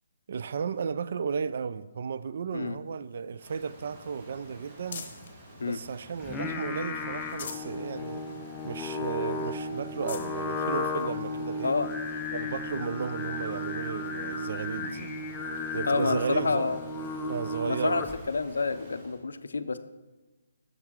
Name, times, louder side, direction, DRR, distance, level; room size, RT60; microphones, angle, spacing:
voice 1, 0.3-5.1 5.6-8.2 8.6-11.8 12.3-15.1 15.7-16.7 17.3-18.1, right 6 dB, 55° right, 0.3 m, -34 dB
sound 1, 2.7-5.4 5.9-6.7 7.1-7.8 8.2-8.3 8.7-8.8 9.4-9.5 9.8-10.3 11.1-11.2 13.0-13.1, left 6 dB, 50° left, 0.9 m, -45 dB
Rain, 3.4-19.2, right 1 dB, 25° right, 1.4 m, -50 dB
Singing, 6.2-18.4, left 3 dB, 15° left, 0.5 m, -34 dB
voice 2, 15.9-16.8 17.6-19.8, left 4 dB, 75° left, 0.4 m, -28 dB
7.1 x 6.6 x 3.6 m
figure-of-eight pair, 150°, 0 cm